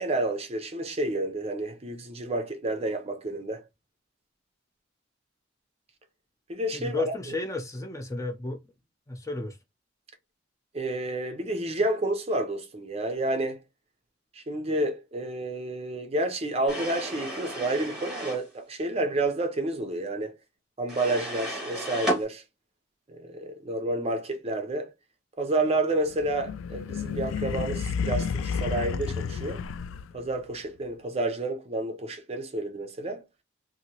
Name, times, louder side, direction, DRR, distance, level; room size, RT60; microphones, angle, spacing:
voice 1, 0.0-3.6 6.5-7.1 10.7-13.6 14.3-20.4 20.8-22.4 23.1-24.9 25.4-29.6 30.1-33.2, right 2 dB, 30° right, 0.5 m, -30 dB
voice 2, 6.7-8.6 9.1-9.6, left 2 dB, 15° left, 0.5 m, -32 dB
sound 1, 16.7-18.5 20.9-22.2, right 1 dB, 5° right, 1.2 m, -33 dB
sound 2, 26.1-30.4, left 6 dB, 90° left, 0.3 m, -31 dB
2.9 x 2.6 x 2.8 m
head